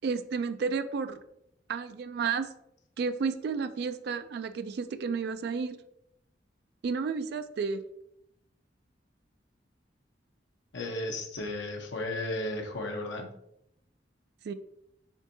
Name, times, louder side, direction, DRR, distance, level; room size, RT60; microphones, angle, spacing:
voice 1, 0.0-1.2 1.7-2.5 3.0-5.7 6.8-7.8 14.4-14.5, right 5 dB, 60° right, 11 dB, 0.3 m, -31 dB
voice 2, 10.7-13.3, left 1 dB, 80° left, 2 dB, 0.9 m, -34 dB
7.2 x 2.7 x 2.7 m, 0.79 s
head